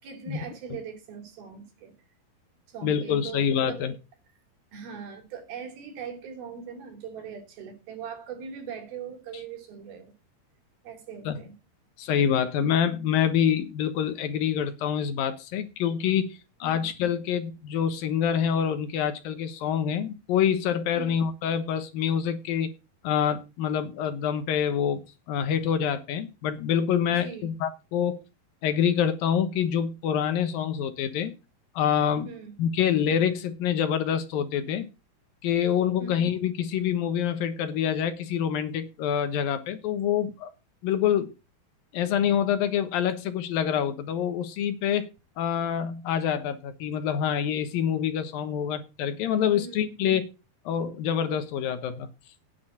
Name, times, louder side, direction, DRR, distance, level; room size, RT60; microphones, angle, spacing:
voice 1, 0.0-1.9 2.7-3.9 4.7-10.1 10.8-11.5 16.6-16.9 21.0-21.3 27.1-27.5 32.2-32.6 36.0-36.3 49.5-49.9, right 6 dB, 70° right, 4.7 m, -40 dB
voice 2, 2.8-3.9 11.3-11.4 12.0-22.7 23.0-25.0 25.3-28.2 28.6-31.3 31.8-32.3 32.6-34.9 35.4-40.5 40.8-41.3 41.9-45.1 45.4-50.3 50.7-52.1, left 8 dB, 70° left, 2.8 m, -26 dB
10.0 x 5.8 x 8.4 m
omnidirectional pair, 4.5 m